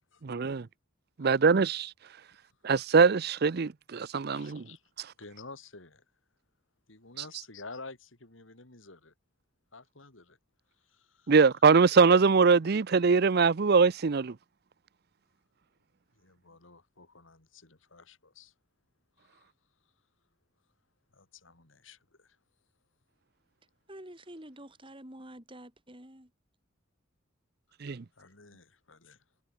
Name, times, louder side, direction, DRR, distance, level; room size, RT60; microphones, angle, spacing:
voice 1, 0.2-0.7 1.2-1.9 2.6-4.6 11.3-14.3 27.8-28.0, right 5 dB, 55° right, 0.5 m, -22 dB
voice 2, 4.3-4.8 5.2-6.0 6.9-9.1 9.7-10.4 10.9-11.4 16.2-18.5 19.2-19.5 21.1-22.4 28.2-29.2, left 3 dB, 80° left, 3.6 m, -50 dB
voice 3, 23.9-26.3, right 1 dB, 25° right, 6.4 m, -48 dB
head